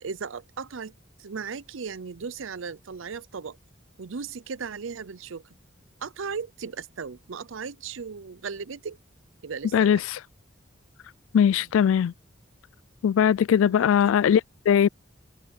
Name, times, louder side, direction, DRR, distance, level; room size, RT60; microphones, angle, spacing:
voice 1, 0.0-0.9 1.2-3.6 4.0-5.4 6.0-9.0 9.4-10.0 11.6-11.7 13.6-14.1, right 5 dB, 80° right, 0.6 m, -36 dB
voice 2, 11.3-12.1 13.0-14.4 14.7-14.9, left 8 dB, 85° left, 0.3 m, -20 dB
head